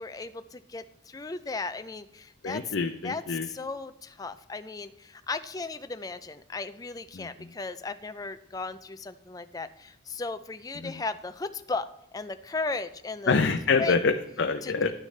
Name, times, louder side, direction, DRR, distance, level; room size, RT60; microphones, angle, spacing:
voice 1, 0.0-2.7 3.0-3.2 3.5-13.4 13.8-14.0 14.6-14.9, left 3 dB, 20° left, 10 dB, 0.4 m, -36 dB
voice 2, 2.4-3.5 7.1-7.5 10.8-10.9 13.3-14.9, left 4 dB, 65° left, 6 dB, 0.6 m, -26 dB
11.5 x 9.8 x 3.2 m, 0.80 s
head